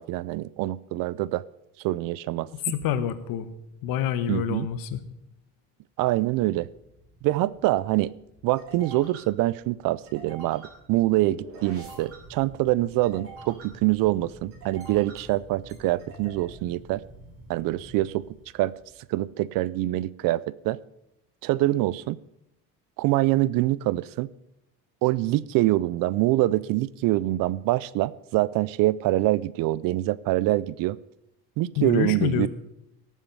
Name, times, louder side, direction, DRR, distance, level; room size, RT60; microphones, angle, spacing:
voice 1, 0.0-1.4 1.8-2.5 4.3-4.7 6.0-6.7 7.2-8.1 8.4-10.6 10.9-17.0 17.5-18.3 18.5-18.7 19.1-20.8 21.4-22.2 23.0-24.3 25.0-31.0 31.6-32.5, right 17 dB, 65° right, 20 dB, 0.5 m, -25 dB
voice 2, 2.6-3.5 3.8-5.0 31.8-32.5, left 9 dB, 65° left, 12 dB, 1.2 m, -27 dB
sound 1, 6.7-19.0, right 2 dB, 40° right, 3.3 m, -47 dB
18.0 x 7.4 x 5.4 m, 0.82 s
cardioid pair, 170°, 37 cm